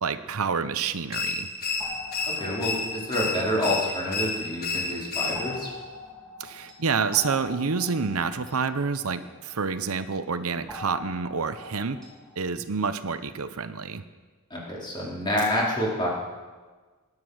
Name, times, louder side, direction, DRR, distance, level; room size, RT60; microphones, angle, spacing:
voice 1, 0.0-1.5 6.4-12.0 12.4-14.0, right 5 dB, 75° right, 11 dB, 0.8 m, -28 dB
sound 1, 1.1-5.7, left 3 dB, 45° left, 1.5 m, -31 dB
sound 2, 1.8-4.6 5.3-9.9 10.7-12.5, left 2 dB, 5° left, 3.1 m, -44 dB
voice 2, 2.3-5.7 14.5-16.1, equal, 20° left, -4 dB, 4.0 m, -28 dB
19.5 x 9.7 x 6.4 m, 1.4 s
head